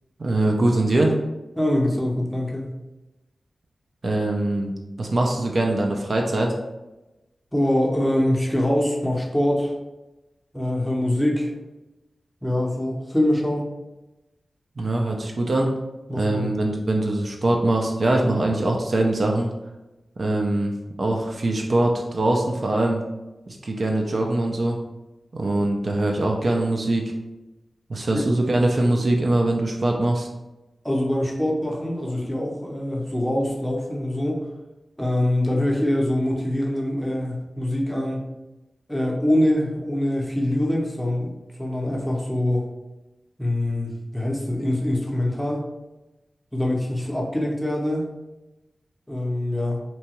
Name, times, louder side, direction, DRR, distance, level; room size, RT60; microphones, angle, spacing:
voice 1, 0.2-1.1 4.0-4.7 5.0-6.6 14.8-15.7 16.1-19.5 20.2-23.0 23.5-24.8 25.3-27.1 27.9-30.3, right 2 dB, 55° right, 1 dB, 0.4 m, -22 dB
voice 2, 1.6-2.7 7.5-9.7 10.5-11.5 12.4-13.7 16.1-16.5 28.1-28.2 30.8-34.4 35.0-38.3 38.9-41.3 41.6-42.7 43.4-45.6 46.5-48.1 49.1-49.8, left 1 dB, 5° left, -2 dB, 0.6 m, -24 dB
2.8 x 2.2 x 2.9 m, 1.0 s
wide cardioid pair, 75°, 0 cm